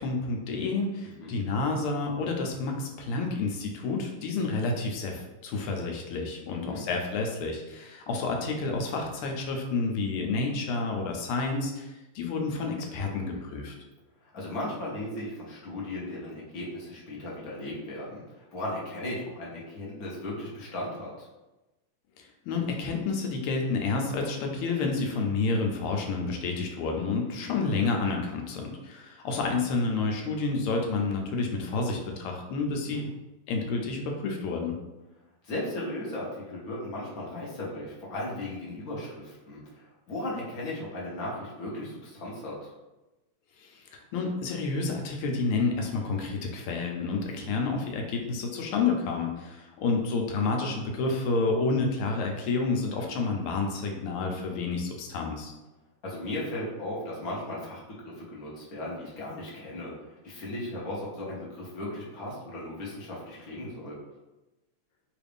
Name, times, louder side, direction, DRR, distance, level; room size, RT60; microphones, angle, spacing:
voice 1, 0.0-13.7 22.2-33.1 33.5-34.8 43.6-43.8 44.1-55.5, left 3 dB, 80° left, 2 dB, 1.5 m, -29 dB
voice 2, 6.5-6.8 13.0-13.4 14.2-21.3 27.4-27.6 32.9-33.1 35.4-42.7 47.2-47.6 56.0-64.0, left 1 dB, 60° left, -5 dB, 1.0 m, -37 dB
3.8 x 2.4 x 3.4 m, 1.0 s
omnidirectional pair, 2.4 m